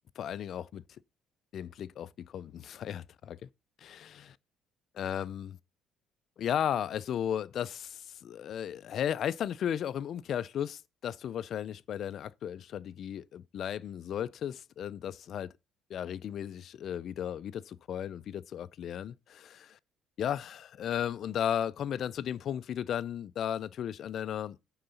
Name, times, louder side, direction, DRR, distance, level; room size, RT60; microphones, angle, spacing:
voice 1, 0.2-0.8 1.5-3.5 3.8-4.3 4.9-5.6 6.4-15.5 15.9-19.8 20.2-24.6, left 9 dB, 45° left, 0.4 m, -35 dB
9.3 x 3.9 x 6.9 m
cardioid pair, 155°, 0 cm